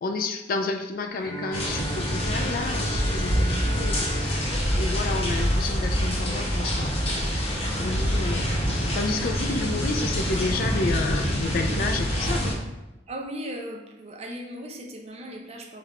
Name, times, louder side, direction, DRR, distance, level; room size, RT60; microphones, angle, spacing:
voice 1, 0.0-4.5 4.8-6.9 7.3-7.4 7.8-8.5 8.9-12.6, left 3 dB, 50° left, 5 dB, 0.3 m, -30 dB
Bowed string instrument, 1.2-6.1, right 1 dB, 5° left, 0.9 m, -38 dB
sound 1, 1.5-12.5, equal, 30° left, 0.8 m, -26 dB
voice 2, 13.1-15.8, equal, 35° right, 1 dB, 0.5 m, -37 dB
3.4 x 2.5 x 4.3 m, 0.99 s
head